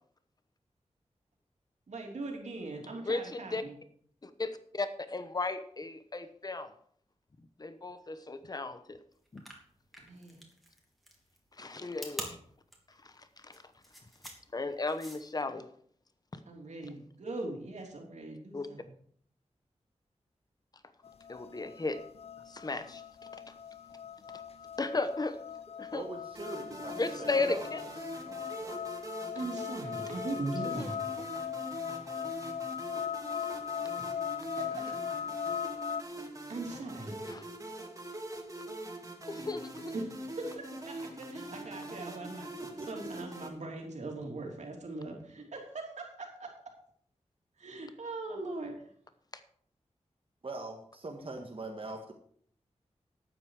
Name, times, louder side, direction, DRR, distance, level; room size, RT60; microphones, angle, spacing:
voice 1, 1.9-3.7 10.0-10.4 16.5-18.9 29.3-31.0 34.0-34.2 34.6-34.8 36.5-37.2 39.9-42.5 42.8-46.5 47.6-48.7, right 2 dB, 80° right, 1 dB, 3.2 m, -40 dB
voice 2, 3.1-3.6 4.2-6.7 7.6-9.0 9.3-9.4 11.6-12.4 13.5-13.6 14.5-15.7 16.3-16.4 18.5-18.7 21.3-22.0 22.5-23.0 24.8-25.4 25.8-26.0 26.9-27.8 30.6-30.9 37.3-37.4 39.3-39.9, left 3 dB, 35° left, 11 dB, 1.0 m, -35 dB
sound 1, 9.3-15.4, equal, ahead, 3.1 m, -46 dB
sound 2, 21.0-36.0, left 8 dB, 60° left, 0.4 m, -39 dB
voice 3, 25.9-28.8 34.7-34.8 42.8-43.1 50.4-52.1, right 2 dB, 50° right, 2 dB, 1.6 m, -43 dB
sound 3, 26.3-43.5, right 1 dB, 30° right, 2.5 m, -43 dB
12.5 x 8.9 x 4.8 m, 0.62 s
wide cardioid pair, 90°, 12 cm